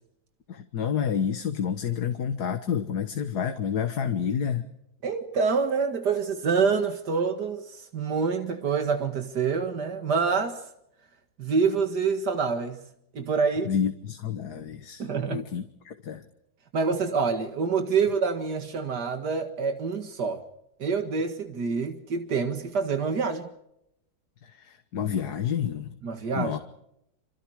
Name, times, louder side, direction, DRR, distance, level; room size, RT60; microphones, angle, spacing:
voice 1, 0.5-4.7 13.7-16.2 24.4-26.0 26.4-26.6, left 8 dB, 75° left, 1.9 m, -29 dB
voice 2, 5.0-10.7 11.4-12.8 13.1-13.7 15.0-15.5 16.7-20.4 20.8-23.5 26.0-26.6, right 5 dB, 90° right, 2.4 m, -26 dB
28.5 x 27.0 x 4.8 m
omnidirectional pair, 1.7 m